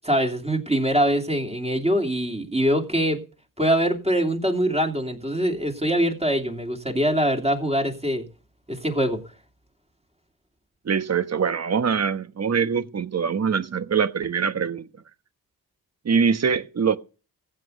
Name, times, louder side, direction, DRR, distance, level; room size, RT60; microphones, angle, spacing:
voice 1, 0.0-3.2 3.6-8.2 8.7-9.2, equal, 15° right, 3.0 m, -23 dB
voice 2, 10.8-14.9 16.0-17.0, right 6 dB, 45° right, 1.2 m, -23 dB
15.0 x 8.2 x 6.5 m
cardioid pair, 75°, 37 cm